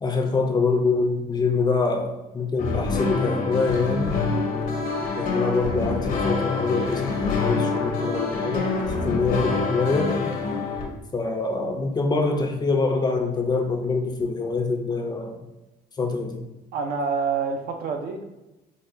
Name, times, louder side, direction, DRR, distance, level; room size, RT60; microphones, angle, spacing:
voice 1, 0.0-4.2 5.2-10.2 11.1-15.4 16.0-16.5, left 4 dB, 25° left, 3 dB, 0.4 m, -25 dB
sound 1, 2.6-10.8, left 4 dB, 55° left, 0.7 m, -26 dB
voice 2, 16.7-18.2, right 5 dB, 60° right, 4 dB, 0.5 m, -28 dB
3.9 x 2.2 x 2.6 m, 1.0 s
cardioid pair, 110°, 17 cm